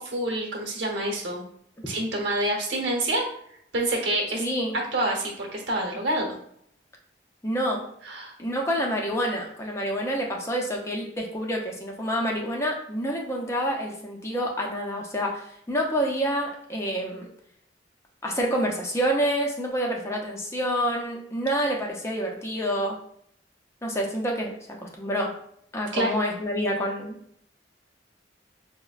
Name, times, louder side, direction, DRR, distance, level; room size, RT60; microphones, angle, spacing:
voice 1, 0.0-1.4 1.9-3.3 3.7-4.4 4.7-6.4 8.0-8.3 25.9-26.1, right 1 dB, 75° right, -1 dB, 1.0 m, -27 dB
voice 2, 4.4-4.8 7.4-7.9 8.4-17.3 18.2-23.0 23.8-24.5 24.8-25.4 25.7-27.2, equal, 15° left, -1 dB, 0.5 m, -28 dB
4.8 x 2.1 x 2.3 m, 0.69 s
head